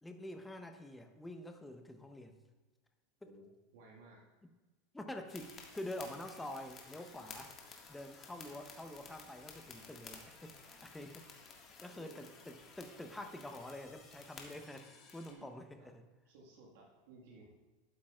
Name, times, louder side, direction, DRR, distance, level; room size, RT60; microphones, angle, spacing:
voice 1, 0.0-2.4 3.2-3.3 4.9-7.5 7.9-11.2 11.8-16.0, left 1 dB, 10° left, 6 dB, 0.9 m, -47 dB
voice 2, 3.2-4.3 12.0-12.2 15.3-15.4 15.7-15.9 16.2-17.5, right 2 dB, 65° right, -2 dB, 1.6 m, -58 dB
sound 1, 5.3-15.3, left 5 dB, 35° left, 1.7 m, -54 dB
11.5 x 8.7 x 2.4 m, 1.2 s
hypercardioid pair, 85°, 0 cm